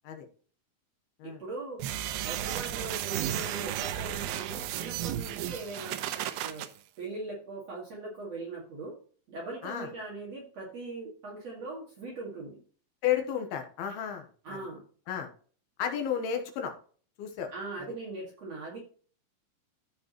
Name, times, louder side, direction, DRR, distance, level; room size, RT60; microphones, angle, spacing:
voice 1, 1.2-1.8 2.2-6.0 6.4-6.7 7.0-9.0 9.3-12.6 14.4-14.8 17.5-18.8, right 2 dB, 50° right, -3 dB, 2.9 m, -40 dB
sound 1, 1.8-6.7, right 12 dB, 85° right, 2.6 m, -34 dB
voice 2, 13.0-14.6 15.1-15.3 15.8-16.7 17.2-17.5, left 9 dB, 90° left, 4 dB, 3.1 m, -32 dB
15.0 x 5.2 x 3.0 m, 0.42 s
omnidirectional pair, 4.3 m